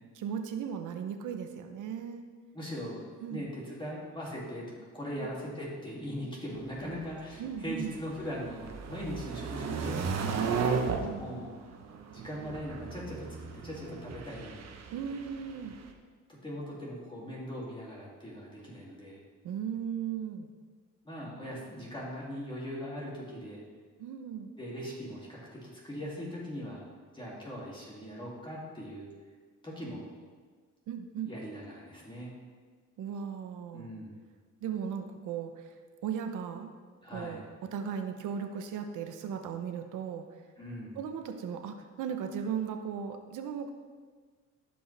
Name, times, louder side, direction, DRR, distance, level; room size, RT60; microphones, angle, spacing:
voice 1, 0.1-2.2 3.2-3.5 5.1-5.3 7.4-7.9 10.7-11.2 14.9-15.8 19.4-20.5 24.0-24.5 30.9-31.3 33.0-33.9 34.6-35.7 36.0-36.7 37.1-37.4 37.7-40.3 41.0-43.7, right 7 dB, 85° right, 6 dB, 0.9 m, -37 dB
voice 2, 2.5-3.0 3.3-10.6 11.2-11.7 12.1-14.7 16.3-19.2 21.0-23.6 24.6-26.8 27.1-29.1 29.6-30.1 31.3-32.3 33.7-34.2 37.0-37.4 40.6-41.0, equal, 15° left, -6 dB, 2.6 m, -40 dB
sound 1, 6.6-15.9, right 5 dB, 60° right, 1.0 m, -35 dB
15.5 x 5.3 x 3.4 m, 1.5 s
cardioid pair, 90°, 30 cm